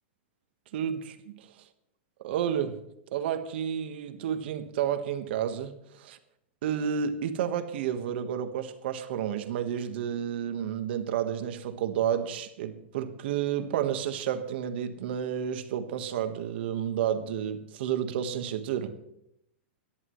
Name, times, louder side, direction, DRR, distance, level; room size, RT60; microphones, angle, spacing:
voice 1, 0.7-1.3 2.2-2.8 3.1-6.2 6.6-18.9, right 9 dB, 60° right, 8 dB, 1.4 m, -31 dB
25.0 x 11.0 x 3.2 m, 0.81 s
supercardioid pair, 155°, 7 cm